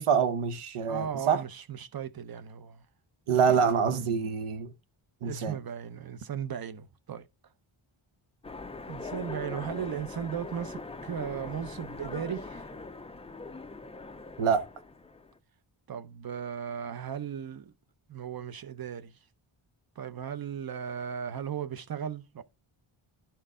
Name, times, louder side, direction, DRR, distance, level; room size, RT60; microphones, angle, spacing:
voice 1, 0.0-1.4 3.3-4.7 5.2-5.6 14.4-14.7, right 6 dB, 80° right, 0.9 m, -26 dB
voice 2, 0.9-2.8 3.5-3.6 5.2-7.3 8.9-12.7 15.9-17.7 18.1-19.2 20.0-22.4, right 8 dB, 45° right, 0.6 m, -36 dB
Train, 8.4-15.4, left 3 dB, 15° left, 0.3 m, -41 dB
11.0 x 4.5 x 3.6 m
wide cardioid pair, 175°, 50 cm